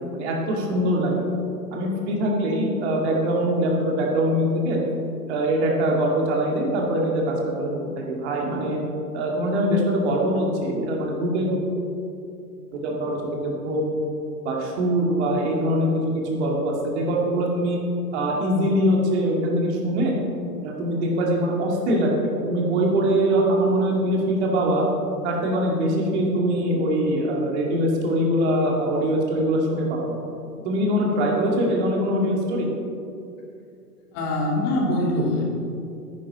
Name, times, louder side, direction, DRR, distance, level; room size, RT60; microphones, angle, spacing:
voice 1, 0.1-1.1 1.7-4.8 5.3-7.7 8.0-8.8 9.1-11.6 12.7-13.9 14.4-17.8 18.1-20.1 20.6-22.1 22.4-24.9 25.2-30.2 30.6-32.7, right 1 dB, 45° right, -1 dB, 2.3 m, -23 dB
voice 2, 34.1-35.4, left 1 dB, 30° left, -2 dB, 2.5 m, -23 dB
10.0 x 9.7 x 4.2 m, 2.6 s
figure-of-eight pair, 110°, 47 cm